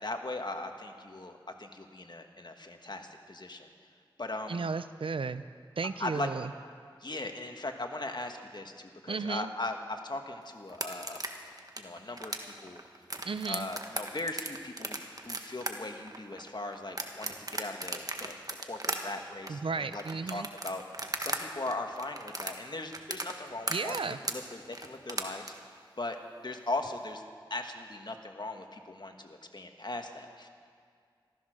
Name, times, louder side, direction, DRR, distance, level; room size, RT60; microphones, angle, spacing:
voice 1, 0.0-3.7 4.2-4.7 6.0-6.3 7.0-11.3 11.8-12.8 13.5-20.0 20.3-20.8 21.2-24.0 24.3-25.5 26.0-26.2 26.4-27.2 27.5-30.5, left 2 dB, 55° left, 5 dB, 1.5 m, -39 dB
voice 2, 4.5-5.4 5.8-6.5 9.1-9.5 13.2-13.7 19.5-20.5 23.7-24.2, right 4 dB, 90° right, 13 dB, 0.5 m, -34 dB
sound 1, 10.7-21.4 21.7-25.5, right 2 dB, 45° right, 1.4 m, -36 dB
14.5 x 14.0 x 6.4 m, 2.2 s
wide cardioid pair, 45°, 9 cm